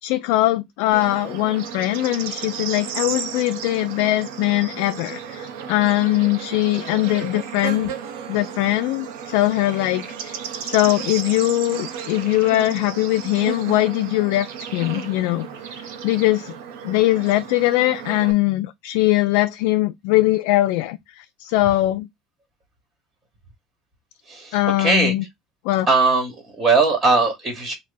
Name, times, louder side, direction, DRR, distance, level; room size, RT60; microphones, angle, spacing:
voice 1, 0.0-7.9 8.3-15.5 15.8-16.5 16.8-22.1 24.5-25.2 25.6-25.9, left 17 dB, 75° left, 0.3 m, -21 dB
Bird / Insect, 0.9-18.3, right 7 dB, 85° right, 0.7 m, -33 dB
voice 2, 24.3-25.1 25.9-27.7, right 3 dB, 20° right, 1.2 m, -19 dB
3.2 x 2.1 x 3.8 m
cardioid pair, 135°, 0 cm